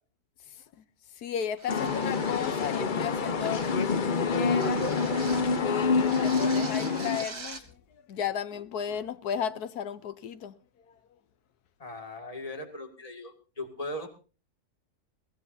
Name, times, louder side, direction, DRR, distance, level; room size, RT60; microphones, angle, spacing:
voice 1, 0.5-0.8 1.1-5.0 5.2-11.0, left 8 dB, 80° left, 1.4 m, -35 dB
sound 1, 1.6-2.9 3.6-3.9 4.5-5.6 6.0-7.7, right 3 dB, 75° right, 2.2 m, -44 dB
sound 2, 1.7-7.2, left 4 dB, 40° left, 0.8 m, -27 dB
voice 2, 11.8-14.1, left 1 dB, 25° left, 2.3 m, -39 dB
22.0 x 16.5 x 2.7 m
omnidirectional pair, 1.6 m